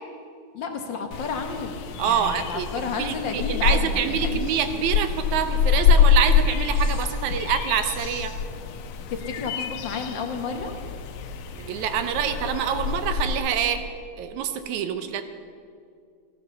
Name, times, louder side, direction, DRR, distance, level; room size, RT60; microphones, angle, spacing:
voice 1, 0.5-4.6 9.1-10.7, left 5 dB, 65° left, 4 dB, 1.2 m, -32 dB
sound 1, 1.1-13.4, left 6 dB, 85° left, 2.4 m, -25 dB
voice 2, 2.0-2.7 3.0-8.3 11.6-13.8 14.2-15.2, right 8 dB, 75° right, 9 dB, 2.2 m, -26 dB
15.0 x 12.5 x 6.9 m, 2.3 s
omnidirectional pair, 3.6 m